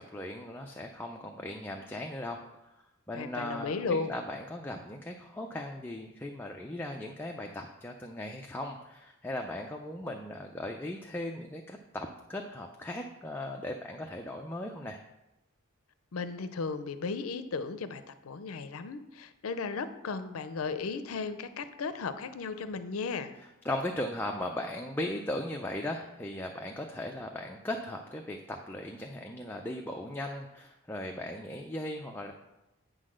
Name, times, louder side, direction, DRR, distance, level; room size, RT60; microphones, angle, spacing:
voice 1, 0.0-2.4 3.1-15.0 23.6-32.3, left 1 dB, 10° left, 2 dB, 0.4 m, -38 dB
voice 2, 3.1-4.1 16.1-23.4, left 4 dB, 80° left, 11 dB, 0.5 m, -35 dB
8.9 x 3.9 x 6.3 m, 0.95 s
head